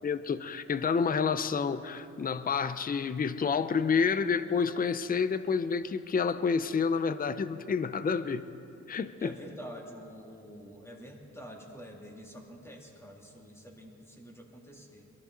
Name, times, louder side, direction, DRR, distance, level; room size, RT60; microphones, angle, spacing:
voice 1, 0.0-8.5 8.9-9.3, left 5 dB, 25° left, 13 dB, 0.5 m, -29 dB
voice 2, 9.2-15.1, equal, 10° left, 0 dB, 2.4 m, -47 dB
22.5 x 13.0 x 3.9 m, 2.7 s
cardioid pair, 80°, 33 cm